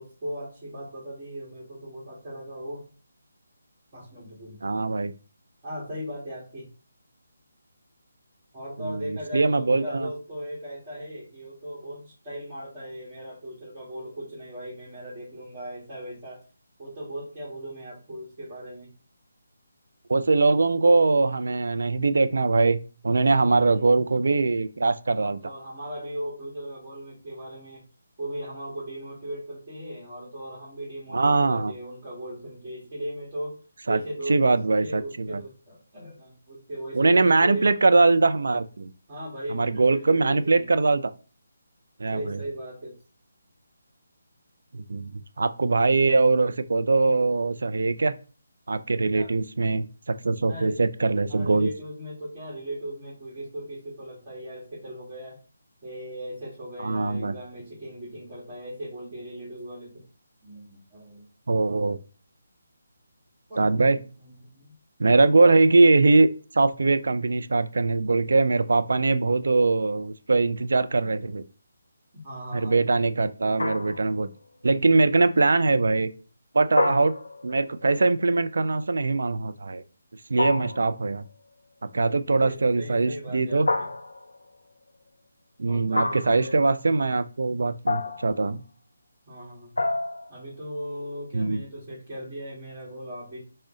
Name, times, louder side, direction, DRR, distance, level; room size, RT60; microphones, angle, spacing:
voice 1, 0.0-2.9 3.9-4.8 5.6-6.7 8.5-16.4 16.8-18.9 23.4-23.9 25.2-27.8 28.2-33.6 33.9-34.4 34.8-37.7 39.1-40.7 42.1-42.9 49.1-49.3 50.5-50.8 51.3-55.4 55.8-60.0 60.4-61.2 63.5-64.7 65.3-65.6 72.2-72.8 82.4-83.9 85.7-86.5 89.3-89.7 90.3-93.4, right 1 dB, 25° right, -7 dB, 1.6 m, -38 dB
voice 2, 4.6-5.1 8.8-10.1 20.1-22.8 23.0-25.4 31.1-31.7 33.9-34.0 34.3-35.0 35.3-35.4 36.9-38.9 39.5-41.0 42.0-42.4 44.7-45.1 45.4-48.1 48.7-51.7 56.8-57.3 61.5-62.0 63.6-64.0 65.0-66.3 66.5-71.4 72.5-74.3 74.6-76.1 76.5-77.1 77.4-79.8 80.3-81.2 81.9-83.7 85.6-88.6 91.3-91.6, right 3 dB, 70° right, 11 dB, 0.3 m, -22 dB
sound 1, 73.6-74.2 76.8-77.6 80.4-81.0 83.7-84.4 85.9-86.5 87.9-88.4 89.8-90.4, left 2 dB, 85° left, 0.5 m, -28 dB
3.6 x 2.1 x 3.7 m, 0.37 s
figure-of-eight pair, 160°, 0 cm